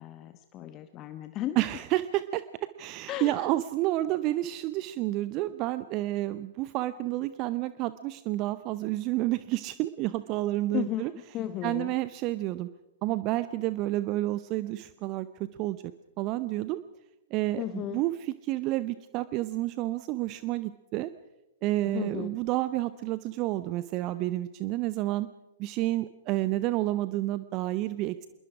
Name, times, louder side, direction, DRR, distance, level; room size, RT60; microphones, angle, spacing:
voice 1, 0.0-1.8 3.1-3.5 10.7-11.9 17.6-18.0 21.8-22.3, left 12 dB, 25° left, 10 dB, 1.1 m, -35 dB
voice 2, 1.6-2.4 2.8-11.1 11.6-12.7 13.0-15.3 15.6-15.8 16.2-16.8 17.3-21.1 21.6-25.3 25.6-28.3, right 16 dB, 30° right, 14 dB, 0.7 m, -30 dB
26.0 x 22.0 x 4.9 m, 0.99 s
figure-of-eight pair, 110°, 0 cm